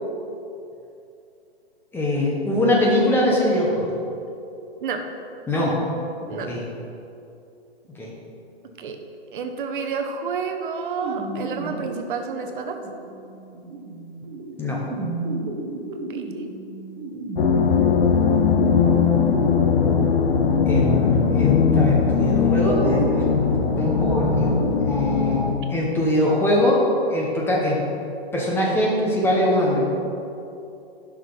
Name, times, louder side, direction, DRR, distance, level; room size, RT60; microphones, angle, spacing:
voice 1, 1.9-3.9 5.5-5.8 6.3-6.6 7.9-8.1 14.6-14.8 18.8-19.0 20.7-23.2 23.8-24.5 24.9-26.8 27.1-27.9 28.3-29.8, left 1 dB, 5° left, -4 dB, 1.3 m, -22 dB
voice 2, 9.3-12.8 15.9-16.3, right 5 dB, 55° right, 5 dB, 1.1 m, -30 dB
sound 1, 11.0-24.7, right 2 dB, 30° right, 1.2 m, -32 dB
sound 2, 17.4-25.5, left 6 dB, 70° left, 0.9 m, -20 dB
11.0 x 6.2 x 4.1 m, 2.7 s
hypercardioid pair, 145°, 31 cm